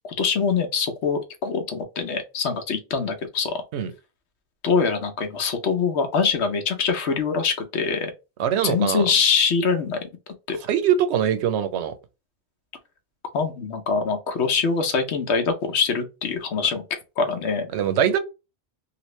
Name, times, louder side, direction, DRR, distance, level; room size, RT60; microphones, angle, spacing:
voice 1, 0.0-3.5 4.6-8.1 8.6-10.0 10.5-10.6 13.3-16.8 17.2-17.7, left 5 dB, 90° left, 1.0 m, -24 dB
voice 2, 8.4-9.1 10.7-12.0 17.7-18.2, right 9 dB, 85° right, 0.9 m, -22 dB
2.9 x 2.5 x 3.0 m
omnidirectional pair, 1.1 m